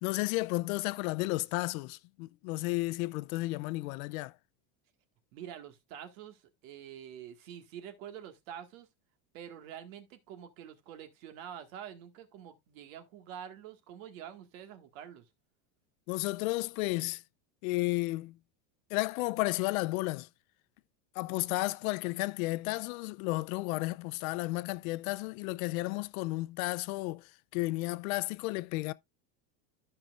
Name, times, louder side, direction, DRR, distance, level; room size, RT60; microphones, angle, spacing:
voice 1, 0.0-4.3 16.1-17.2 17.6-18.4 18.9-20.3 21.2-28.9, left 21 dB, 75° left, 0.6 m, -33 dB
voice 2, 5.3-8.9 9.3-15.3, right 9 dB, 70° right, 1.8 m, -47 dB
13.5 x 5.8 x 2.4 m
cardioid pair, 170°, 43 cm